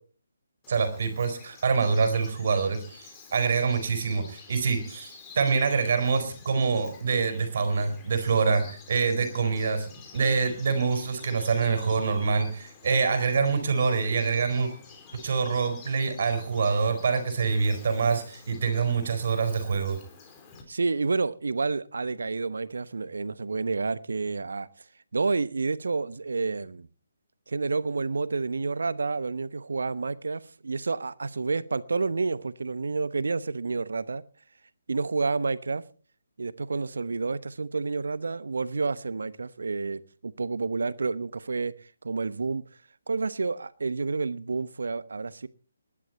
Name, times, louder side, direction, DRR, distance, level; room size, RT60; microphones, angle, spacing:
Bird vocalization bird call bird song, 0.6-20.6, left 4 dB, 20° left, 3.9 m, -50 dB
voice 1, 0.7-9.9 10.1-14.7 15.1-20.0, right 5 dB, 50° right, 4.4 m, -25 dB
voice 2, 20.7-24.7 25.1-26.9 27.5-34.2 34.9-35.8 36.4-41.7 42.0-42.6 43.1-45.5, right 4 dB, 65° right, 1.0 m, -29 dB
20.0 x 11.5 x 4.4 m
figure-of-eight pair, 145°, 0 cm